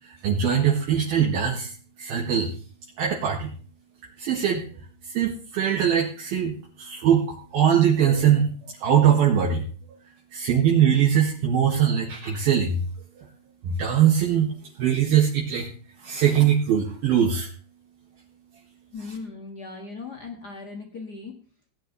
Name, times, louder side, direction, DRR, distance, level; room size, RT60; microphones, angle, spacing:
voice 1, 0.0-1.7 2.0-2.5 3.0-3.5 4.2-4.7 5.0-8.5 8.8-9.7 10.3-12.8 13.6-15.7 16.0-17.5, right 8 dB, 65° right, -2 dB, 3.4 m, -21 dB
voice 2, 18.9-21.3, left 4 dB, 70° left, 2 dB, 0.9 m, -38 dB
18.5 x 10.0 x 4.1 m, 0.41 s
omnidirectional pair, 5.0 m